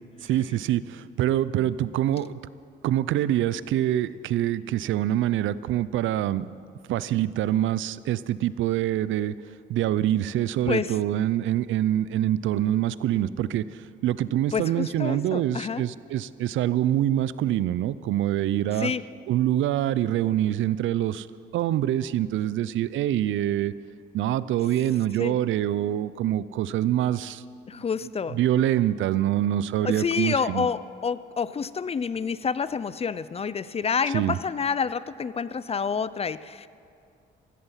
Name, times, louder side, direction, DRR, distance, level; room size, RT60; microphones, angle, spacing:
voice 1, 0.2-2.4 2.8-6.5 6.9-9.3 9.7-18.9 19.3-21.3 21.5-23.7 24.1-27.4 28.0-30.7 34.1-34.4, right 12 dB, 75° right, 17 dB, 0.5 m, -25 dB
voice 2, 14.5-15.8 18.8-19.0 25.2-25.4 27.7-28.4 29.8-36.7, left 6 dB, 30° left, 16 dB, 0.5 m, -28 dB
16.0 x 15.5 x 5.7 m, 2.4 s
cardioid pair, 90°, 20 cm